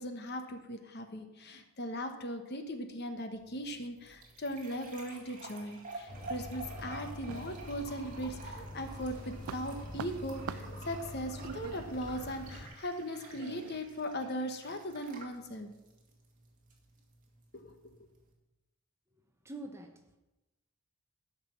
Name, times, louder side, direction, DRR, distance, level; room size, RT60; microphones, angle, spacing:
voice 1, 0.0-15.7 17.5-17.9, equal, 50° left, 7 dB, 1.2 m, -39 dB
sound 1, 3.3-18.3, right 3 dB, 35° right, 2.0 m, -51 dB
sound 2, 6.1-12.7, left 1 dB, 90° left, 2.5 m, -45 dB
sound 3, 7.3-8.3 8.7-13.8, right 8 dB, 75° right, 0.3 m, -46 dB
voice 2, 19.4-20.2, right 1 dB, 10° right, 4 dB, 0.9 m, -45 dB
12.5 x 5.4 x 7.3 m, 1.0 s
head